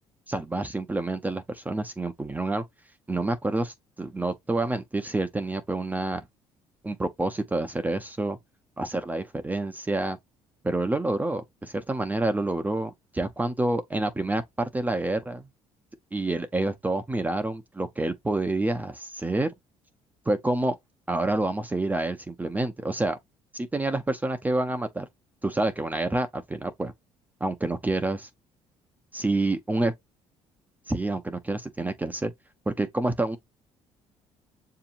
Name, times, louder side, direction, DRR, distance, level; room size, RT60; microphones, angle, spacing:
voice 1, 0.3-2.6 3.1-6.3 6.8-8.4 8.8-10.2 10.6-15.4 16.1-19.5 20.3-20.8 21.1-23.2 23.5-25.1 25.4-26.9 27.4-28.3 29.1-29.9 30.9-32.3 32.7-33.4, right 2 dB, 15° right, 0.5 m, -28 dB
6.7 x 2.8 x 2.5 m
supercardioid pair, 85°, 12 cm